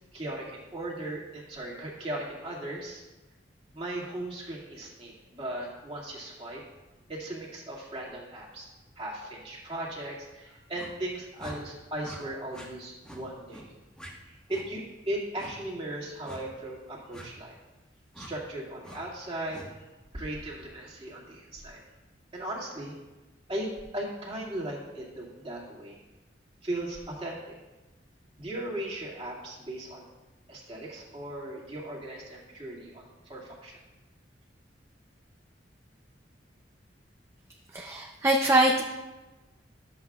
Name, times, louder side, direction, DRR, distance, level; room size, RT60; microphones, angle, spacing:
voice 1, 0.1-3.0 3.7-6.6 7.1-8.7 9.0-13.7 14.2-17.5 18.2-19.9 20.1-21.8 22.3-23.0 23.5-26.0 26.6-27.6 28.4-30.1 30.5-33.8, right 1 dB, 30° right, -5 dB, 2.1 m, -37 dB
sound 1, 10.7-10.9 11.4-11.6 12.0-12.2 12.5-12.7 13.0-13.2 13.5-13.7 14.0-14.1 14.5-14.7 15.4-15.5 16.2-16.4 17.1-17.3 18.1-18.3 18.8-19.0 19.5-19.7, equal, 5° left, 1.4 m, -45 dB
voice 2, 37.7-38.8, right 1 dB, 15° right, -1 dB, 0.5 m, -23 dB
13.0 x 7.9 x 2.4 m, 1.1 s
head